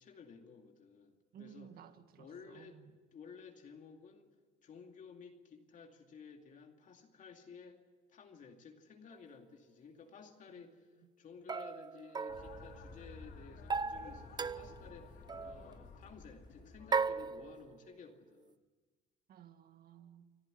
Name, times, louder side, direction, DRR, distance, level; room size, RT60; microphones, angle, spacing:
voice 1, 0.0-1.7 2.2-2.8 3.1-4.3 4.6-7.8 8.1-18.6, left 5 dB, 50° left, 3 dB, 2.4 m, -55 dB
voice 2, 1.3-3.0 10.5-10.6 11.0-11.1 19.3-20.3, right 9 dB, 65° right, 9 dB, 1.9 m, -56 dB
sound 1, 9.1-9.2 11.5-13.1 13.7-14.9 15.3-15.6 16.9-17.9, right 5 dB, 25° right, 0.6 m, -37 dB
sound 2, 12.3-17.5, left 4 dB, 75° left, 4.3 m, -53 dB
25.5 x 14.0 x 9.6 m, 1.3 s
cardioid pair, 110°, 17 cm